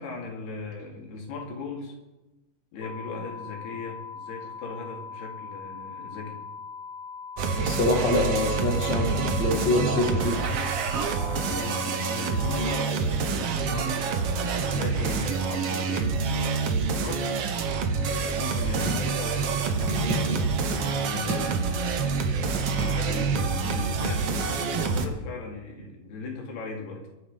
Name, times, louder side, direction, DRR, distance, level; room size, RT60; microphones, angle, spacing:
voice 1, 0.0-2.0 2.7-6.4 9.8-10.0 11.4-17.2 17.5-22.0 22.5-27.1, left 4 dB, 90° left, 0 dB, 4.8 m, -38 dB
sound 1, 2.8-12.8, left 5 dB, 50° left, 3.2 m, -40 dB
sound 2, 7.4-25.1, right 5 dB, 70° right, 1.4 m, -27 dB
voice 2, 7.6-10.4, left 2 dB, 35° left, 2 dB, 2.2 m, -25 dB
sound 3, 18.8-19.2 19.5-21.0 21.3-21.7 22.1-22.2 22.5-23.1 23.6-23.7, right 2 dB, 35° right, 2.4 m, -32 dB
22.0 x 9.0 x 5.1 m, 1.0 s
omnidirectional pair, 4.4 m